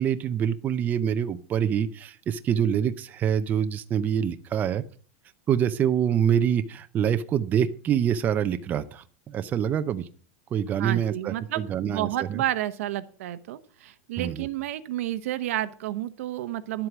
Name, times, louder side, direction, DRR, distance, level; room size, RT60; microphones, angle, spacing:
voice 1, 0.0-4.8 5.5-10.1 10.5-12.4 14.2-14.5, right 9 dB, 25° right, 10 dB, 0.5 m, -26 dB
voice 2, 10.8-16.9, right 13 dB, 75° right, 12 dB, 1.0 m, -31 dB
11.5 x 7.9 x 6.0 m, 0.42 s
supercardioid pair, 160°, 8 cm